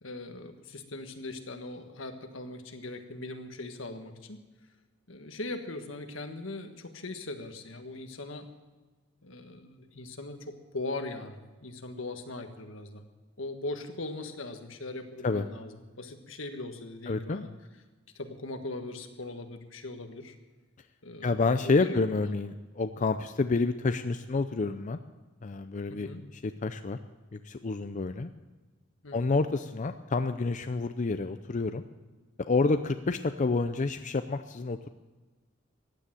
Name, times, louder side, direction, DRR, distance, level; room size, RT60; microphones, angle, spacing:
voice 1, 0.0-4.4 5.1-8.5 9.2-13.0 13.4-17.5 18.1-20.3 21.0-22.4 25.9-26.2 29.0-29.4, left 2 dB, 80° left, 6 dB, 1.5 m, -40 dB
voice 2, 17.1-17.4 21.2-25.0 25.4-27.0 27.3-28.3 29.1-31.8 32.5-34.9, left 3 dB, 40° left, 9 dB, 0.5 m, -29 dB
15.0 x 10.0 x 7.7 m, 1.2 s
head